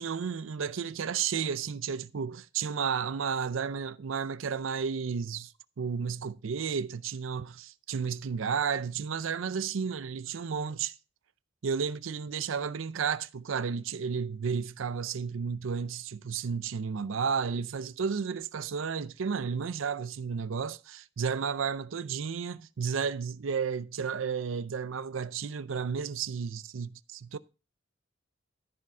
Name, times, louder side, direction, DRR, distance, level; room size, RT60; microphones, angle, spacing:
voice 1, 0.0-5.5 5.8-10.9 11.6-27.4, right 6 dB, 75° right, 0.5 m, -32 dB
14.0 x 5.1 x 6.0 m
head